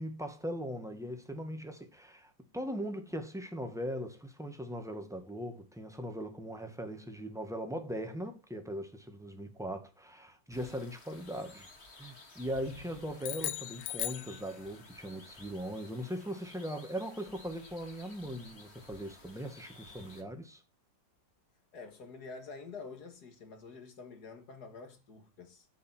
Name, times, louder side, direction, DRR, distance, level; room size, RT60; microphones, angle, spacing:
voice 1, 0.0-11.7 12.0-20.6, equal, ahead, 1.7 m, -40 dB
sound 1, 10.5-20.2, left 2 dB, 35° left, 2.2 m, -55 dB
sound 2, 13.2-15.0, left 14 dB, 80° left, 1.4 m, -38 dB
voice 2, 21.7-25.7, left 4 dB, 55° left, 2.5 m, -48 dB
8.6 x 8.4 x 4.6 m
omnidirectional pair, 2.1 m